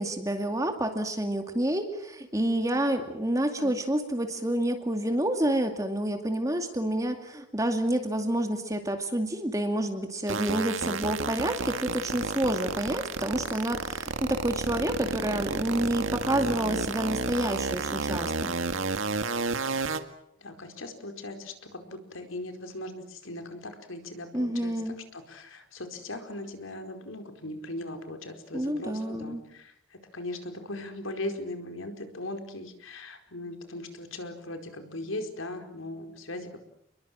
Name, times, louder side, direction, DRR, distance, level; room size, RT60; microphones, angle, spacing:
voice 1, 0.0-18.5 24.3-25.0 28.5-29.4, right 1 dB, 15° right, 5 dB, 2.3 m, -29 dB
sound 1, 10.3-20.0, right 3 dB, 80° right, 2.0 m, -31 dB
voice 2, 20.4-24.7 25.1-36.6, left 1 dB, 85° left, 6 dB, 4.7 m, -39 dB
30.0 x 22.5 x 7.7 m, 0.74 s
head